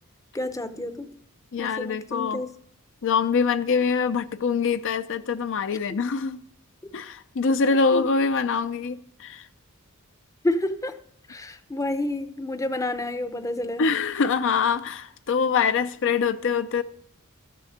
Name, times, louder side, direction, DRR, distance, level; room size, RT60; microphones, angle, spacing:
voice 1, 0.3-1.1 1.6-2.5 7.9-8.0 10.4-11.0 11.3-13.8, left 1 dB, 15° left, 0.6 m, -29 dB
voice 2, 1.5-2.4 3.0-6.4 6.9-9.5 13.8-16.8, left 5 dB, 60° left, 0.5 m, -24 dB
13.5 x 6.9 x 6.4 m
head